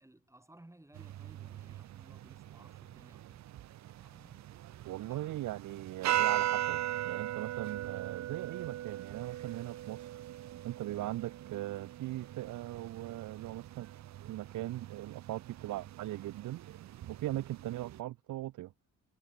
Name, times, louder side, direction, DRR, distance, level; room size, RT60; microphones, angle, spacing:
voice 1, 0.0-3.5 4.0-4.8 5.1-5.4, right 1 dB, 10° right, 7.6 m, -59 dB
sound 1, 0.9-18.0, right 13 dB, 65° right, 0.8 m, -39 dB
voice 2, 4.8-10.2 10.6-13.9 14.3-16.6 17.1-18.7, right 15 dB, 80° right, 1.2 m, -39 dB
cardioid pair, 90°, 30 cm